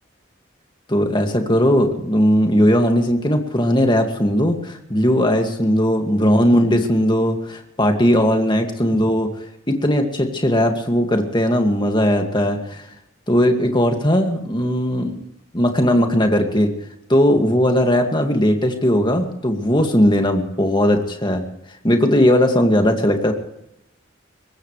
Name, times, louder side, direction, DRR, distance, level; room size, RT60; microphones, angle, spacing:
voice 1, 0.9-9.3 9.7-12.9 13.3-15.2 15.5-16.7 17.1-21.4 21.8-23.3, equal, 25° left, 4 dB, 2.1 m, -18 dB
23.0 x 19.0 x 3.3 m, 0.80 s
head